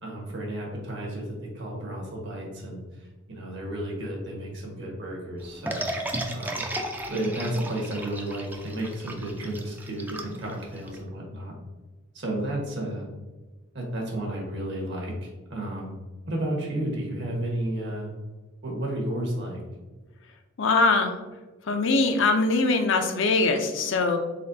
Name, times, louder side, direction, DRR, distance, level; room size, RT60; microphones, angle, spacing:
voice 1, 0.0-6.1 6.3-6.6 7.1-11.5 12.1-13.1 13.7-15.9 16.3-18.1 18.6-19.6, right 1 dB, 60° right, -1 dB, 1.3 m, -32 dB
sound 1, 5.7-11.0, right 1 dB, 10° right, 0.4 m, -34 dB
voice 2, 20.6-21.2 21.7-24.2, left 3 dB, 65° left, 5 dB, 0.5 m, -22 dB
4.2 x 3.7 x 2.7 m, 1.2 s
head